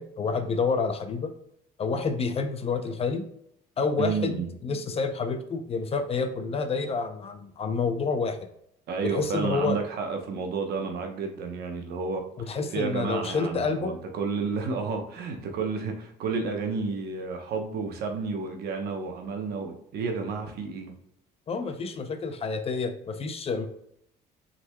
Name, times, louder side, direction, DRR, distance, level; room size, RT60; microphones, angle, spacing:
voice 1, 0.0-1.3 1.8-3.3 3.8-8.5 9.0-9.8 12.4-14.0 21.5-23.7, left 4 dB, 35° left, 8 dB, 0.6 m, -29 dB
voice 2, 4.0-4.5 8.9-20.9, right 4 dB, 70° right, 4 dB, 0.9 m, -31 dB
5.7 x 4.0 x 2.2 m, 0.71 s
cardioid pair, 110°, 17 cm